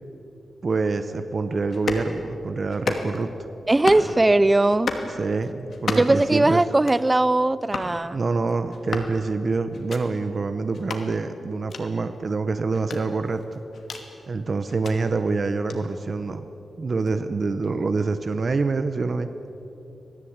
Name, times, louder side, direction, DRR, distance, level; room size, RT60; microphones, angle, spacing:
voice 1, 0.6-3.3 5.2-6.6 8.1-13.4 14.3-16.4 16.8-19.3, right 4 dB, 40° right, 9 dB, 0.9 m, -26 dB
sound 1, 1.7-2.1 2.7-3.3 3.7-4.1 4.7-5.1 5.7-6.2 6.7-7.1 7.7-7.9 8.7-9.1 9.7-10.0 10.7-11.0 11.7-11.8 12.7-14.1 14.7-14.9 15.7-15.8, left 4 dB, 60° left, 2.5 m, -32 dB
voice 2, 3.7-4.9 6.0-8.2, right 2 dB, 15° right, 16 dB, 0.6 m, -19 dB
26.0 x 18.0 x 8.8 m, 2.9 s
wide cardioid pair, 140°, 0 cm